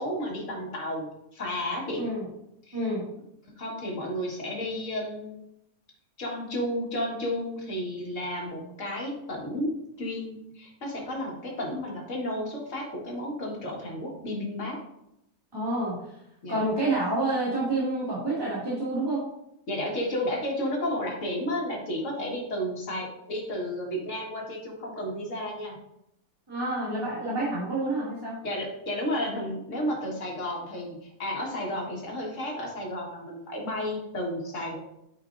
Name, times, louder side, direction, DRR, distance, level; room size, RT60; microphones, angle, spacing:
voice 1, 0.0-2.1 2.7-2.9 3.6-5.4 6.2-14.8 16.4-16.7 19.7-25.8 28.4-34.8, left 1 dB, 55° left, -2 dB, 2.0 m, -32 dB
voice 2, 2.7-3.0 15.5-16.0 16.5-19.2 26.5-28.4, right 2 dB, 15° right, -9 dB, 2.1 m, -28 dB
9.2 x 5.1 x 2.6 m, 0.80 s
omnidirectional pair, 1.6 m